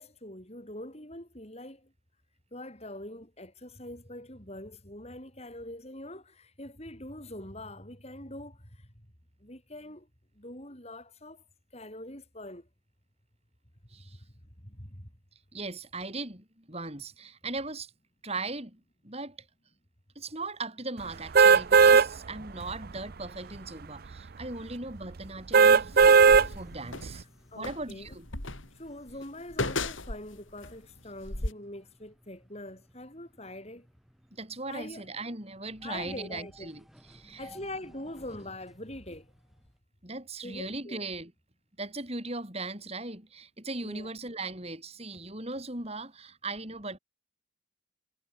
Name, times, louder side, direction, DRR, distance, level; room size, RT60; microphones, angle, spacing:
voice 1, 0.0-1.9 2.5-8.9 9.4-10.1 10.4-11.4 11.7-12.7 14.6-15.1 27.5-28.1 28.8-33.9 34.7-35.1 35.8-36.7 37.4-39.3 40.4-41.0 43.8-44.1, left 1 dB, 30° left, 7.7 m, -43 dB
voice 2, 15.5-17.9 18.2-19.4 20.2-27.2 27.5-28.3 34.3-37.5 40.0-41.3 41.8-47.0, right 3 dB, 30° right, 5.9 m, -38 dB
sound 1, 21.3-22.1 22.6-22.7 25.5-26.5 27.0-27.1, right 5 dB, 45° right, 0.5 m, -17 dB
sound 2, 25.4-39.8, equal, ahead, 7.5 m, -58 dB
sound 3, 25.9-27.1 27.6-30.8 31.2-31.5, left 2 dB, 75° left, 3.8 m, -35 dB
head